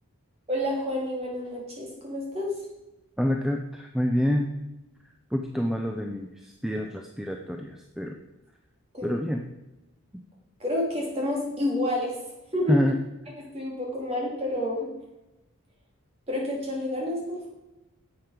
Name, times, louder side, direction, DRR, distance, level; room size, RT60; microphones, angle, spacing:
voice 1, 0.5-2.5 8.9-9.2 10.6-12.1 12.5-12.8 13.3-14.9 16.3-17.4, left 1 dB, 25° right, -3 dB, 3.2 m, -29 dB
voice 2, 3.2-4.5 5.3-8.2 9.0-9.4 12.7-13.0, equal, ahead, 2 dB, 0.5 m, -27 dB
10.5 x 7.7 x 5.1 m, 0.96 s
head